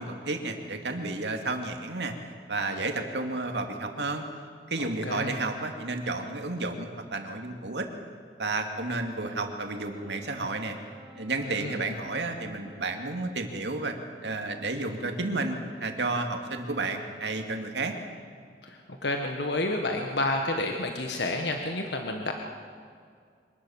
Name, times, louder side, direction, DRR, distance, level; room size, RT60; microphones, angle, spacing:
voice 1, 0.0-2.1 2.5-4.2 4.7-7.9 8.4-10.8 11.2-13.9 14.2-17.9, right 2 dB, 85° right, 4 dB, 2.4 m, -31 dB
voice 2, 4.8-5.3 11.4-12.0 18.6-22.3, left 2 dB, 80° left, 3 dB, 1.6 m, -30 dB
Wind instrument woodwind instrument, 9.6-14.1, right 2 dB, ahead, 5.1 m, -54 dB
25.0 x 19.5 x 7.3 m, 2.1 s
head